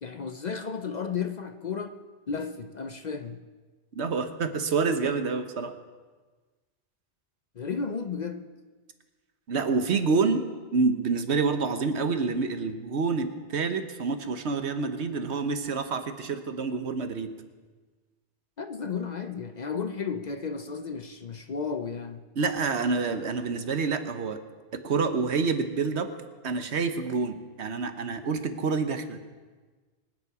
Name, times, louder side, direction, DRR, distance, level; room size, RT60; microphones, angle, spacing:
voice 1, 0.0-2.0 2.3-3.4 7.6-8.5 18.6-22.3, left 5 dB, 45° left, 8 dB, 0.7 m, -33 dB
voice 2, 3.9-5.7 9.5-10.4 10.7-17.3 22.4-24.4 24.8-26.1 26.4-29.2, right 4 dB, 75° right, 8 dB, 1.3 m, -27 dB
24.0 x 9.7 x 4.8 m, 1.4 s
omnidirectional pair, 1.2 m